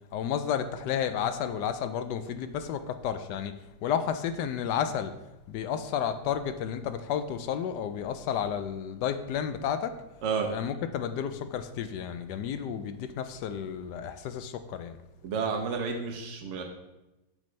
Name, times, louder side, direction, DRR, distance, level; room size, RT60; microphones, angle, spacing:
voice 1, 0.1-3.5 3.8-5.1 5.5-9.9 10.5-15.0, left 8 dB, 75° left, 10 dB, 1.0 m, -31 dB
voice 2, 10.2-10.5 15.2-16.6, right 5 dB, 65° right, 3 dB, 0.7 m, -30 dB
8.0 x 6.4 x 3.2 m, 0.99 s
omnidirectional pair, 2.1 m